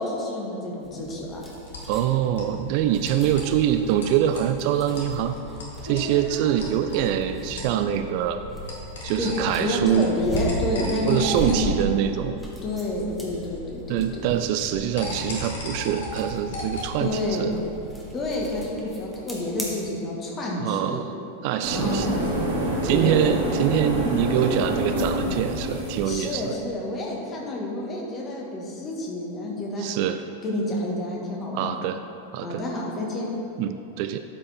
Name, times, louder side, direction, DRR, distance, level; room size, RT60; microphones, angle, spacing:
voice 1, 0.0-1.4 9.1-12.0 12.6-14.2 17.0-17.6 18.1-21.0 21.7-22.4 22.9-23.4 26.1-29.9 30.4-31.8 32.4-33.3, left 1 dB, 25° left, -2 dB, 1.8 m, -29 dB
sound 1, 0.8-19.7, right 1 dB, 5° left, 1.7 m, -38 dB
sound 2, 0.9-17.0, left 1 dB, 60° left, 1.6 m, -37 dB
voice 2, 1.9-5.3 5.8-8.4 9.0-10.1 11.1-12.4 13.9-17.5 20.6-21.1 21.4-22.1 22.8-26.6 29.8-30.2 31.5-32.0 32.3-32.6 33.6-34.2, right 10 dB, 45° right, 9 dB, 0.3 m, -24 dB
sound 3, 21.6-26.4, right 1 dB, 65° right, 1.9 m, -27 dB
12.0 x 5.0 x 4.3 m, 2.8 s
figure-of-eight pair, 90°, 0 cm